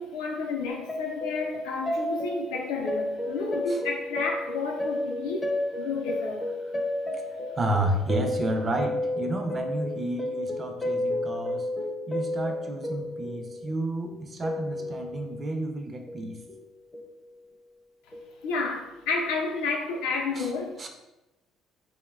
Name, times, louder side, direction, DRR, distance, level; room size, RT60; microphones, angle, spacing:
voice 1, 0.0-6.5 18.4-20.9, left 4 dB, 85° left, 1 dB, 0.4 m, -31 dB
sound 1, 0.7-15.5 16.1-16.7 16.9-17.1 18.1-18.3, left 1 dB, 30° left, 0.4 m, -32 dB
voice 2, 7.6-11.7 12.1-16.4 20.3-20.5 20.8-20.9, right 1 dB, 35° right, 4 dB, 0.4 m, -31 dB
2.9 x 2.1 x 2.3 m, 0.98 s
supercardioid pair, 70°, 0 cm